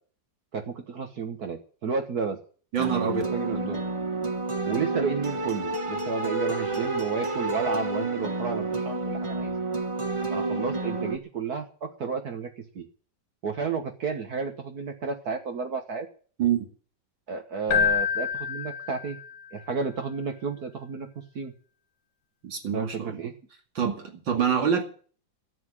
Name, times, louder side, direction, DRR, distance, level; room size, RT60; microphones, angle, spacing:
voice 1, 0.5-2.4 2.9-3.9 4.6-9.5 10.3-12.5 12.7-12.9 13.4-16.1 17.3-19.2 19.5-21.1 21.3-21.5 22.7-23.3, right 5 dB, 55° right, 5 dB, 1.7 m, -32 dB
voice 2, 2.7-3.2 16.4-16.7 22.4-23.2 23.7-24.8, right 7 dB, 75° right, 3 dB, 3.1 m, -26 dB
sound 1, 2.8-11.2, right 2 dB, 20° right, 0.9 m, -30 dB
Keyboard (musical), 17.7-19.5, left 7 dB, 70° left, 1.8 m, -27 dB
12.5 x 8.2 x 9.8 m, 0.43 s
omnidirectional pair, 2.0 m